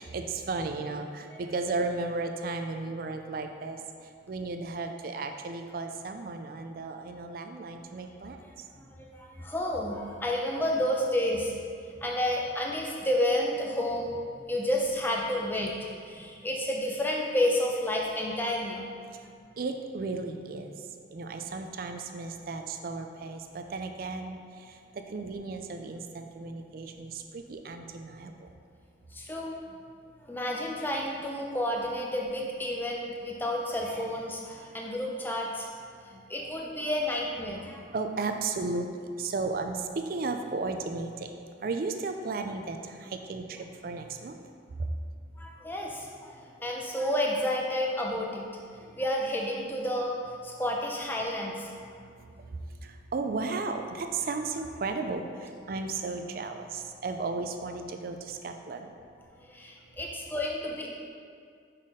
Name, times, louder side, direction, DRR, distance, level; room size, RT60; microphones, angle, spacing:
voice 1, 0.0-8.4 19.6-28.5 35.9-36.0 37.9-41.3 41.6-44.4 44.8-44.9 52.0-58.9, right 3 dB, 50° right, 6 dB, 0.4 m, -35 dB
voice 2, 8.7-11.6 12.0-14.2 14.5-15.8 16.0-18.9 29.1-29.8 30.2-35.7 36.0-37.8 45.4-48.5 48.8-51.7 59.4-60.9, left 1 dB, 10° left, -1 dB, 0.5 m, -30 dB
5.7 x 4.1 x 4.9 m, 2.2 s
head